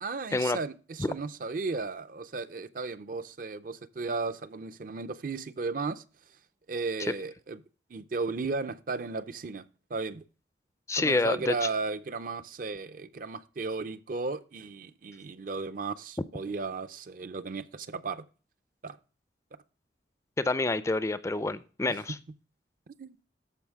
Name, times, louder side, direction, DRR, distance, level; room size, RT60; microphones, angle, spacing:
voice 1, 0.0-6.0 6.7-7.6 7.9-9.6 9.9-10.2 10.9-18.2 18.8-19.0 21.9-22.0 23.0-23.2, right 4 dB, 50° right, 0.5 m, -35 dB
voice 2, 10.9-11.7 20.4-22.2, left 2 dB, 15° left, 0.4 m, -28 dB
13.5 x 5.0 x 3.5 m
head